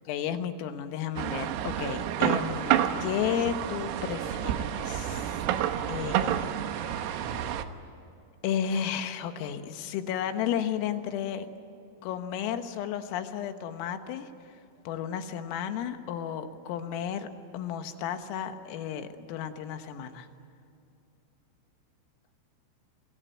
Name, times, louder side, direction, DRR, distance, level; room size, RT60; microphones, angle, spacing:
voice 1, 0.1-7.4 8.4-11.5 12.0-14.3 14.9-17.3 17.5-20.3, left 9 dB, 80° left, 8 dB, 3.9 m, -33 dB
sound 1, 1.2-7.6, right 10 dB, 90° right, 3.9 m, -29 dB
27.5 x 21.0 x 9.1 m, 2.7 s
omnidirectional pair, 6.0 m